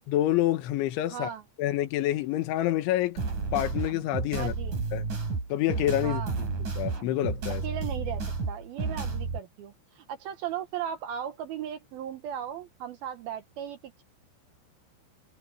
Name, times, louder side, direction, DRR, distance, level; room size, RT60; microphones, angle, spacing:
voice 1, 0.1-1.3 1.6-3.2 3.5-4.5 4.9-5.1 5.5-6.2 6.8-7.6, left 13 dB, 80° left, 3.8 m, -27 dB
voice 2, 1.1-1.4 4.3-4.8 6.0-6.3 7.6-14.0, right 9 dB, 70° right, 2.6 m, -37 dB
sound 1, 3.2-9.4, right 4 dB, 40° right, 6.6 m, -32 dB
omnidirectional pair, 5.4 m